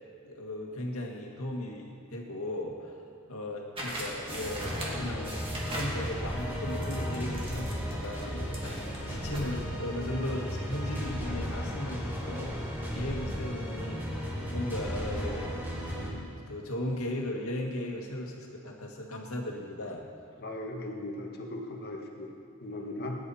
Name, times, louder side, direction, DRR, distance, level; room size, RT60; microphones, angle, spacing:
voice 1, 0.2-3.0 3.3-5.3 5.7-14.1 14.5-15.6 16.1-20.0, left 1 dB, 75° left, 0 dB, 2.0 m, -37 dB
sound 1, 3.8-9.5, right 1 dB, 25° right, 2.5 m, -41 dB
sound 2, 4.3-16.1, equal, 10° right, 2.3 m, -35 dB
voice 2, 20.4-22.3 22.6-23.2, left 1 dB, 50° left, 1 dB, 1.7 m, -38 dB
20.5 x 11.0 x 4.3 m, 2.4 s
head